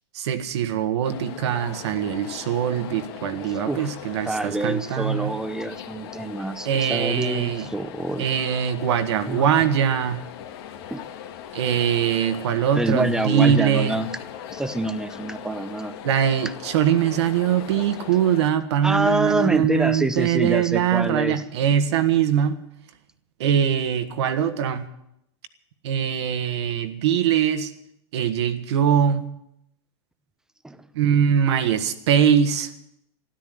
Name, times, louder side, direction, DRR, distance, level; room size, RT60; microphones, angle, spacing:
voice 1, 0.1-5.3 6.6-7.7 8.2-10.2 11.5-14.0 16.0-22.6 23.4-24.8 25.8-27.7 28.1-29.3 30.9-32.7, right 9 dB, 75° right, 8 dB, 1.7 m, -22 dB
sound 1, 1.0-18.5, left 9 dB, 60° left, 1.9 m, -39 dB
voice 2, 4.3-8.2 9.3-9.7 10.9-11.0 12.7-14.1 14.5-16.0 18.8-21.4 30.6-30.9, right 2 dB, 5° right, 12 dB, 0.7 m, -26 dB
13.0 x 12.5 x 8.0 m, 0.79 s
supercardioid pair, 145°, 15 cm